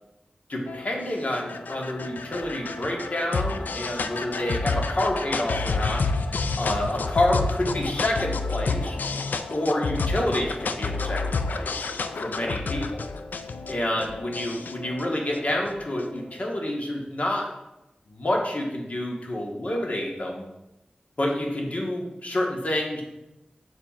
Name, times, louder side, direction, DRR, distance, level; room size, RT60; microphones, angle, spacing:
voice 1, 0.5-6.0 6.6-9.0 9.5-11.9 12.2-13.0 13.7-17.5 18.1-20.5 21.2-23.0, left 1 dB, 55° left, -1 dB, 1.5 m, -28 dB
sound 1, 0.7-16.2, left 3 dB, 90° left, 0.3 m, -30 dB
7.1 x 6.5 x 2.5 m, 0.94 s
cardioid pair, 40°, 3 cm